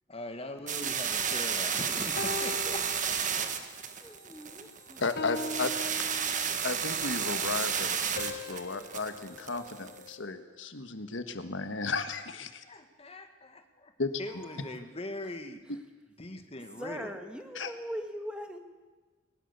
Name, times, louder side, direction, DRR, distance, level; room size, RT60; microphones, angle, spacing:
voice 1, 0.1-3.0 3.4-3.7 4.0-4.2 4.8-4.9 12.6-13.9 14.2-15.6 16.2-17.2, left 1 dB, 30° left, 7 dB, 2.0 m, -42 dB
sound 1, 0.7-10.1, right 7 dB, 40° right, 1.6 m, -32 dB
sound 2, 2.2-3.7 4.2-4.5 5.2-6.8 8.2-10.6, left 2 dB, 55° left, 1.3 m, -41 dB
voice 2, 4.0-5.5 14.3-14.8 16.8-18.6, equal, 5° right, 6 dB, 1.7 m, -41 dB
voice 3, 5.0-5.7 6.6-12.6 14.0-14.1 17.6-17.7, left 3 dB, 85° left, 9 dB, 1.5 m, -34 dB
22.0 x 19.5 x 6.9 m, 1.3 s
head